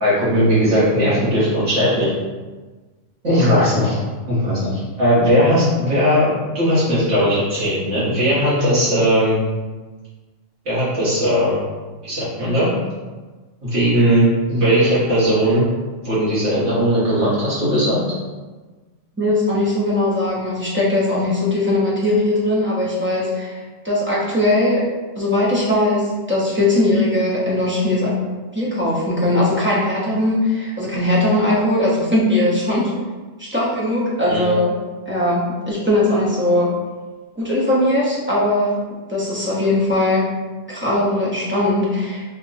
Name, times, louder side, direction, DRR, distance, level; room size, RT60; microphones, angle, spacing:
voice 1, 0.0-2.1 3.2-4.0 4.3-9.4 10.7-11.6 12.0-12.7 13.6-14.2 14.5-15.6 16.0-18.0 34.3-34.5, equal, 75° right, -10 dB, 1.7 m, -18 dB
voice 2, 19.2-24.8 25.2-28.1 28.5-32.9 33.4-34.8 35.1-36.7 37.4-38.8 39.1-40.3 40.7-42.3, left 1 dB, 10° right, -7 dB, 0.6 m, -19 dB
3.6 x 2.2 x 3.9 m, 1.3 s
omnidirectional pair, 1.3 m